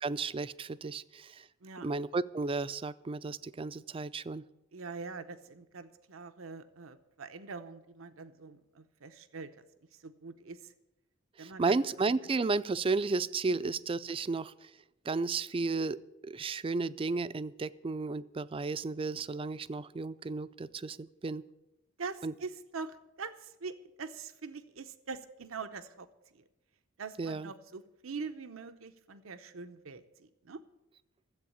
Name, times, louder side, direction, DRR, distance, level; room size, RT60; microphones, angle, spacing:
voice 1, 0.0-1.5 1.8-4.4 11.4-14.7 15.1-16.0 16.2-21.4 22.2-22.3 27.2-27.5, right 3 dB, 25° right, 15 dB, 0.4 m, -33 dB
voice 2, 4.7-9.6 9.9-10.7 11.4-11.7 13.5-13.7 22.0-26.1 26.3-26.4 27.0-30.6, right 4 dB, 85° right, 10 dB, 0.8 m, -43 dB
14.0 x 8.1 x 8.5 m, 0.93 s
head